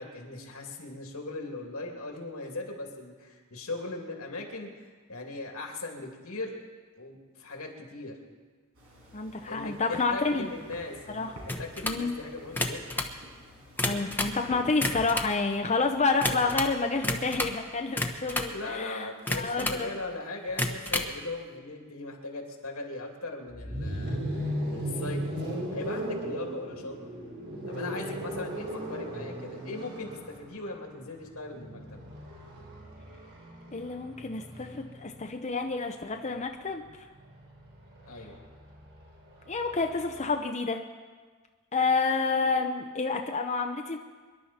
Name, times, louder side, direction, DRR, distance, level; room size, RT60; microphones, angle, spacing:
voice 1, 0.0-6.6 7.0-8.2 9.5-13.1 18.5-25.2 25.7-27.1 27.7-32.0 38.1-38.4, left 2 dB, 90° left, 1 dB, 2.7 m, -39 dB
sound 1, 8.7-17.0, equal, 80° right, 5.4 m, -49 dB
voice 2, 9.1-10.5 11.1-11.4 11.8-12.1 13.8-19.9 33.7-36.8 39.5-40.8 41.7-44.0, left 4 dB, 35° left, 4 dB, 0.7 m, -29 dB
sound 2, 11.5-12.0 12.5-13.1 13.6-14.4 14.7-15.4 16.2-16.7 17.0-17.6 18.0-18.6 19.3-19.9 20.5-21.1, left 1 dB, 10° left, 1.0 m, -31 dB
sound 3, 23.5-35.4 36.7-40.3, equal, 60° right, 5.7 m, -37 dB
25.0 x 11.5 x 4.3 m, 1.5 s
head